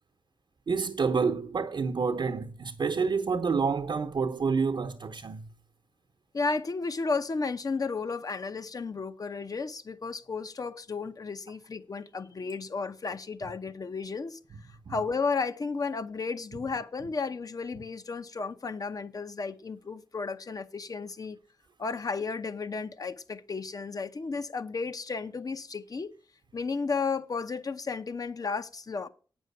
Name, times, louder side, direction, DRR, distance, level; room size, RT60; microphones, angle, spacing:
voice 1, 0.7-5.4 14.9-15.0, right 5 dB, 60° right, 1.0 m, -28 dB
voice 2, 6.3-14.4 14.9-21.4 21.8-26.1 26.5-29.1, left 4 dB, 45° left, 0.8 m, -33 dB
9.1 x 6.3 x 8.2 m
wide cardioid pair, 120°, 9 cm